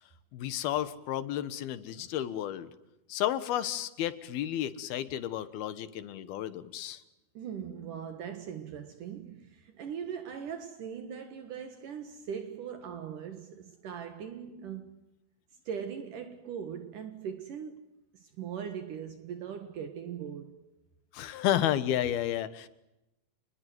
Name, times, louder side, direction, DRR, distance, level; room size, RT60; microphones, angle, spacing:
voice 1, 0.3-2.7 3.1-7.0 21.1-22.7, left 12 dB, 85° left, 3.3 m, -32 dB
voice 2, 7.3-15.0 15.7-17.9 18.1-20.7, right 7 dB, 65° right, 3.0 m, -40 dB
28.5 x 21.0 x 9.6 m
omnidirectional pair, 4.3 m